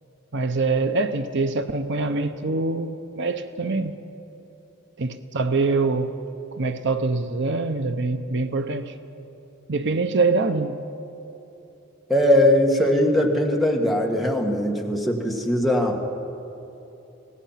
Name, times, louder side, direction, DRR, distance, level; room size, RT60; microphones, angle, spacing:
voice 1, 0.3-3.9 5.0-6.1 6.5-8.9 9.7-10.8, right 3 dB, 60° right, 9 dB, 0.8 m, -24 dB
voice 2, 12.1-16.0, left 1 dB, ahead, 1 dB, 1.8 m, -20 dB
25.5 x 19.0 x 5.8 m, 3.0 s
head